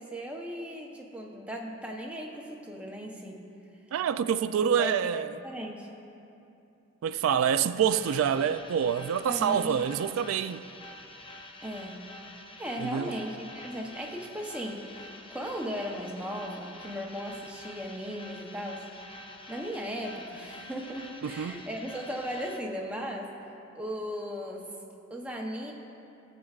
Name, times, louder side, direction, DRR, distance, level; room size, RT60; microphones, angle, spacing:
voice 1, 0.0-3.5 4.8-5.9 9.3-9.8 11.6-12.0 12.6-18.8 19.5-23.3 23.7-24.7 25.1-25.7, equal, 5° right, 0.7 m, -37 dB
voice 2, 3.9-5.3 7.0-10.6 12.8-13.1 21.2-21.6, right 8 dB, 85° right, 0.3 m, -27 dB
sound 1, 7.8-22.6, left 1 dB, 25° left, 0.5 m, -47 dB
20.0 x 7.6 x 2.4 m
head